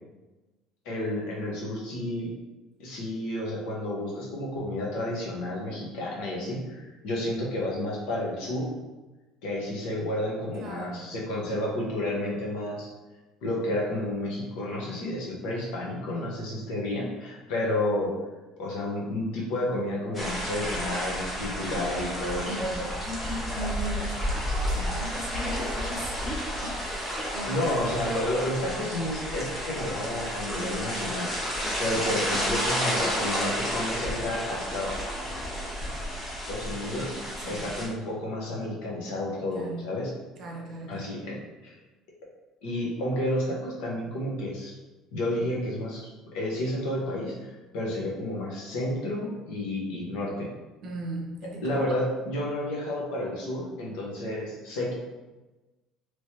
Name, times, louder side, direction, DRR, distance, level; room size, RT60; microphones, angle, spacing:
voice 1, 0.8-2.3 2.8-8.7 9.4-12.9 13.4-18.2 18.6-22.6 27.5-34.9 36.5-37.2 37.5-40.1 40.9-41.4 42.6-44.8 45.1-50.5 51.6-54.9, left 1 dB, 80° left, -3 dB, 0.9 m, -31 dB
voice 2, 10.5-11.1 22.4-27.6 37.4-37.7 39.5-39.9 40.4-41.1 50.8-51.8, right 1 dB, 45° right, 0 dB, 0.6 m, -37 dB
sound 1, 20.1-37.9, equal, 15° left, 1.0 m, -31 dB
3.1 x 3.0 x 2.8 m, 1.1 s
cardioid pair, 165°, 0 cm